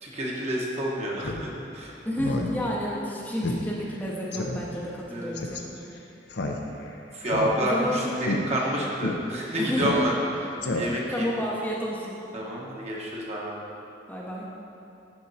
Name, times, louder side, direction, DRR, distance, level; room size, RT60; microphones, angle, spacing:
voice 1, 0.0-1.9 5.1-5.3 7.1-11.3 12.3-13.5, equal, 35° right, -3 dB, 1.3 m, -29 dB
Speech synthesizer, 1.2-1.4 1.8-1.9 2.2-2.5 2.8-2.9 3.4-3.6 3.9-4.0 4.3-4.6 5.3-5.6 6.3-6.9 7.3-7.9 8.2-8.4 9.0-9.1 9.8-10.3 10.6-11.1, left 2 dB, 65° left, 0.7 m, -30 dB
voice 2, 2.1-5.7 7.6-8.1 9.6-9.8 11.1-12.2 14.1-14.5, equal, 10° left, -5 dB, 0.8 m, -30 dB
11.5 x 4.4 x 4.1 m, 2.7 s
head